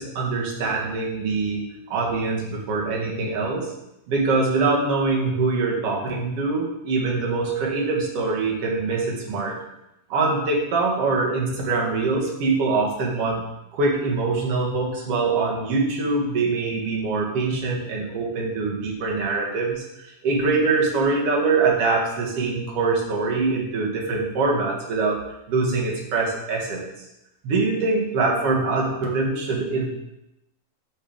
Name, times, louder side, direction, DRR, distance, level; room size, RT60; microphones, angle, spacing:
voice 1, 0.0-1.6 1.9-3.7 4.1-9.6 10.1-13.4 13.7-25.2 25.5-26.8 27.4-29.9, right 3 dB, 55° right, -2 dB, 2.0 m, -23 dB
6.2 x 5.7 x 5.1 m, 0.89 s
omnidirectional pair, 4.1 m